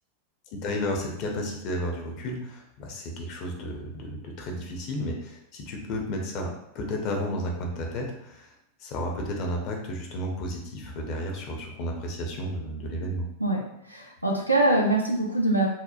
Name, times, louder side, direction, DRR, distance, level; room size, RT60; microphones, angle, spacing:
voice 1, 0.5-8.5 8.8-13.3, equal, 40° left, 1 dB, 0.5 m, -32 dB
voice 2, 13.4-15.7, right 1 dB, 90° right, -1 dB, 0.4 m, -24 dB
2.8 x 2.1 x 2.4 m, 0.78 s
figure-of-eight pair, 90°, 0 cm